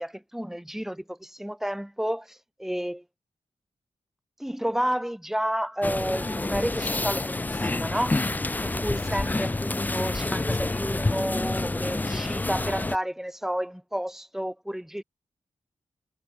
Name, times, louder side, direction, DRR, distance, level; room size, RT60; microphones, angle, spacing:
voice 1, 0.0-3.0 4.4-8.3 8.6-15.0, equal, 5° right, 1.5 m, -31 dB
sound 1, 5.8-13.0, left 2 dB, 15° left, 0.3 m, -28 dB
cardioid pair, 70°, 12 cm